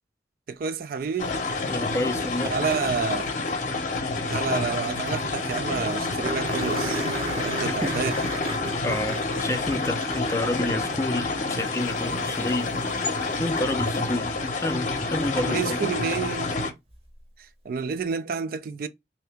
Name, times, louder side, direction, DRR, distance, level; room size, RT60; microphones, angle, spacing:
voice 1, 0.5-1.4 2.5-3.5 4.3-7.1 7.4-8.2 15.5-16.5 17.7-18.9, right 5 dB, 55° right, 0.3 m, -29 dB
sound 1, 1.2-16.7, left 3 dB, 45° left, 0.7 m, -28 dB
voice 2, 1.7-2.6 7.6-8.0 8.8-12.7 13.4-15.8, left 1 dB, 15° left, 0.4 m, -29 dB
sound 2, 4.8-4.9 5.1-5.2 5.5-5.6 6.2-11.6 13.9-14.0 16.9-17.0, right 2 dB, 35° right, 0.8 m, -34 dB
2.7 x 2.7 x 3.3 m
head